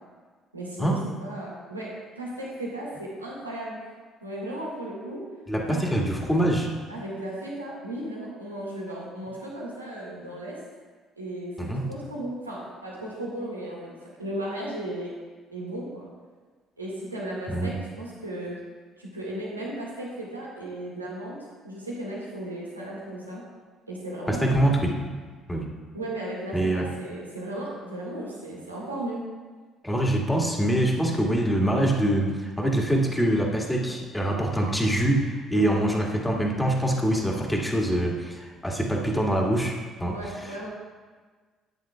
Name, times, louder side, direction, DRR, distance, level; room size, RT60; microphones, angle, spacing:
voice 1, 0.5-3.8 4.2-5.2 5.7-5.8 6.9-10.6 11.2-15.1 15.5-16.1 16.8-18.6 19.0-21.4 21.6-23.4 23.9-24.7 25.9-29.2 35.5-35.7 40.0-40.7, right 1 dB, 85° right, -5 dB, 2.0 m, -35 dB
voice 2, 5.5-6.7 11.6-11.8 17.5-17.7 24.3-24.9 25.5-25.7 26.5-26.9 29.8-40.2, right 1 dB, 5° left, -1 dB, 2.1 m, -24 dB
13.5 x 9.5 x 2.4 m, 1.4 s
figure-of-eight pair, 50°, 0 cm